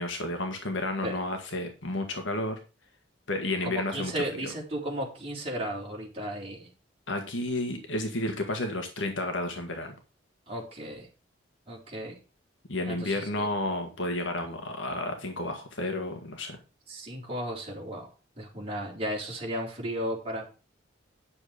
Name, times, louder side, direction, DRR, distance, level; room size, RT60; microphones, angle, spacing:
voice 1, 0.0-2.6 3.3-4.5 7.1-9.9 12.7-16.6, left 2 dB, 75° left, 4 dB, 1.7 m, -31 dB
voice 2, 3.6-6.7 10.5-11.1 11.7-12.2 12.9-13.5 16.9-18.1 18.4-20.5, right 1 dB, 30° right, -3 dB, 4.0 m, -35 dB
10.5 x 6.8 x 5.1 m, 0.32 s
head